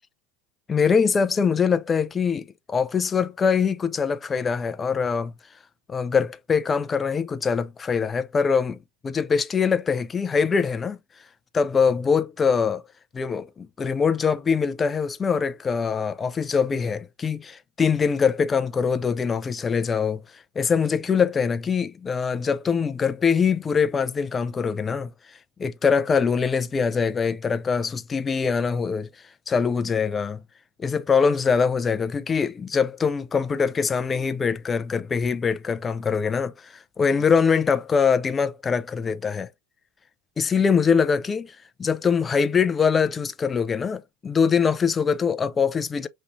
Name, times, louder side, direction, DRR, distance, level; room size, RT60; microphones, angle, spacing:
voice 1, 0.7-5.3 5.9-8.8 9.0-11.0 11.5-12.8 13.1-25.1 25.6-29.1 29.5-30.4 30.8-39.5 40.4-46.1, left 6 dB, 20° left, 0.4 m, -23 dB
5.2 x 3.1 x 2.6 m
supercardioid pair, 145°, 0 cm